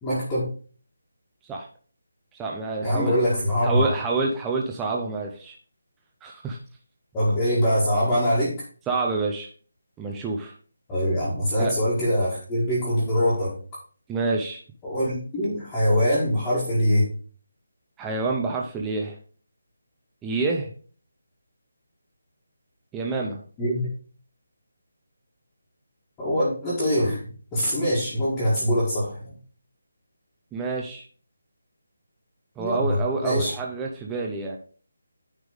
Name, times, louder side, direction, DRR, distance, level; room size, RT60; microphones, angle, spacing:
voice 1, 0.0-0.5 2.8-3.9 7.1-8.5 10.9-13.5 14.8-17.1 23.6-23.8 26.2-27.2 27.5-29.3 32.6-33.5, equal, 10° left, -11 dB, 1.7 m, -23 dB
voice 2, 2.3-3.2 3.6-5.6 6.2-6.6 8.9-9.5 10.0-10.5 11.6-11.8 14.1-14.6 18.0-19.2 20.2-20.7 22.9-23.4 30.5-31.1 32.6-34.6, right 3 dB, 5° right, -1 dB, 0.5 m, -27 dB
9.7 x 3.5 x 4.9 m, 0.41 s
hypercardioid pair, 175°, 0 cm